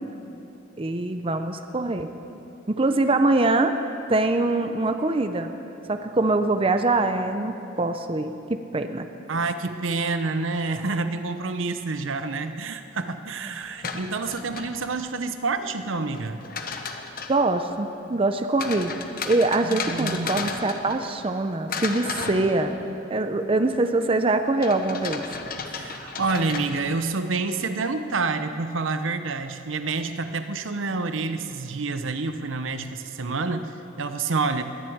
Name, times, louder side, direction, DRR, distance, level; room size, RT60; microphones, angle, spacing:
voice 1, 0.8-2.1 2.7-3.8 4.1-5.5 5.9-9.1 13.5-13.6 17.3-18.9 19.3-22.7 23.1-25.2, right 2 dB, 30° right, 8 dB, 0.6 m, -23 dB
voice 2, 9.3-16.4 19.6-20.3 25.7-34.6, right 3 dB, 80° right, 9 dB, 0.8 m, -28 dB
sound 1, 13.6-15.1 16.1-17.5 18.6-21.4 21.7-23.1 24.6-27.1, left 5 dB, 45° left, 1.1 m, -34 dB
20.5 x 7.8 x 8.7 m, 2.9 s
head